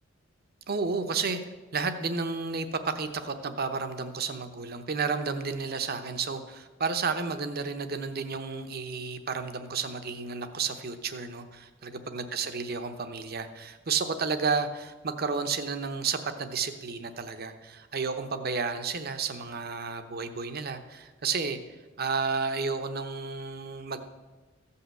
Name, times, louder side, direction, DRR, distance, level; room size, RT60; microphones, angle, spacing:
voice 1, 0.7-1.4 1.7-21.6 22.0-24.0, right 5 dB, 50° right, 8 dB, 0.9 m, -32 dB
14.5 x 5.7 x 7.6 m, 1.2 s
head